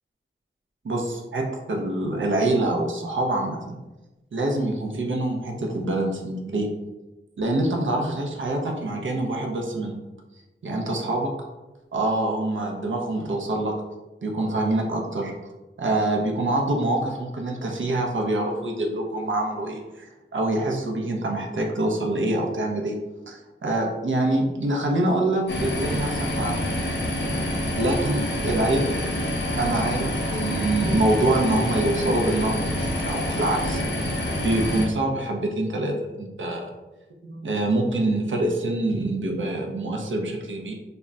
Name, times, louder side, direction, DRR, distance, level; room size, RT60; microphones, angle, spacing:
voice 1, 0.8-3.8 4.3-6.7 7.4-10.0 10.6-11.3 11.9-13.7 14.2-15.3 15.8-23.0 23.3-26.6 27.7-28.9 29.5-36.6 37.2-40.7, right 2 dB, 65° right, 1 dB, 0.5 m, -25 dB
sound 1, 25.5-34.9, left 1 dB, 55° left, 0.6 m, -27 dB
2.2 x 2.1 x 3.7 m, 1.1 s
wide cardioid pair, 65°, 21 cm